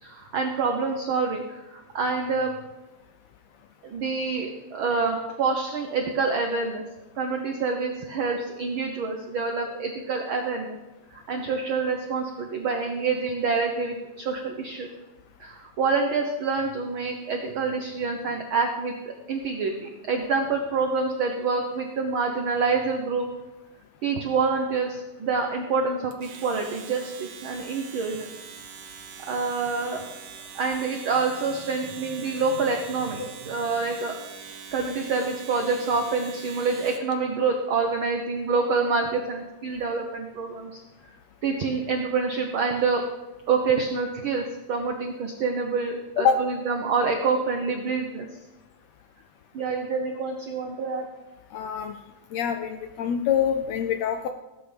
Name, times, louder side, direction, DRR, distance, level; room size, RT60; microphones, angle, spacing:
voice 1, 0.0-2.5 3.8-6.8 7.2-10.8 11.1-14.9 15.4-23.3 24.0-28.3 29.3-30.0 30.5-34.2 34.7-40.8 41.4-43.0 43.5-48.3 49.5-51.1, right 4 dB, 90° right, 4 dB, 1.1 m, -27 dB
Domestic sounds home sounds, 26.1-37.1, right 7 dB, 70° right, 2.4 m, -43 dB
voice 2, 51.5-51.9 52.3-54.3, left 7 dB, 80° left, 7 dB, 1.5 m, -25 dB
18.0 x 9.2 x 3.4 m, 1.1 s
omnidirectional pair, 3.6 m